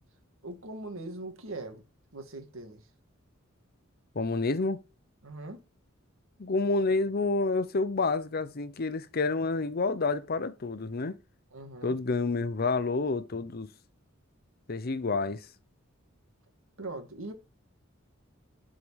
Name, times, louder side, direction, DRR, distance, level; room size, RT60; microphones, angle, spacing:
voice 1, 0.4-1.8 2.1-2.8 5.2-5.6 11.5-12.0 16.8-17.3, right 2 dB, 75° right, 2.1 m, -40 dB
voice 2, 4.1-4.8 6.4-11.2 11.8-13.7 14.7-15.5, left 3 dB, 50° left, 0.7 m, -29 dB
11.0 x 5.0 x 4.8 m
head